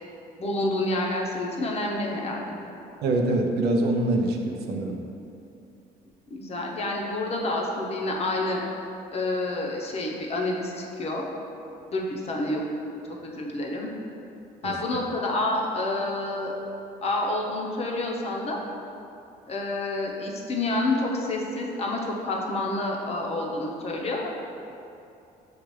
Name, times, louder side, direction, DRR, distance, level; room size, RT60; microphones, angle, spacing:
voice 1, 0.4-2.6 6.3-11.2 11.9-12.6 13.2-13.9 14.6-16.5 17.0-18.6 19.5-24.4, left 2 dB, 40° left, -1 dB, 0.7 m, -28 dB
voice 2, 3.0-5.0 14.6-15.1, right 2 dB, 75° right, 2 dB, 0.5 m, -25 dB
6.7 x 2.4 x 3.1 m, 2.8 s
cardioid pair, 110°, 17 cm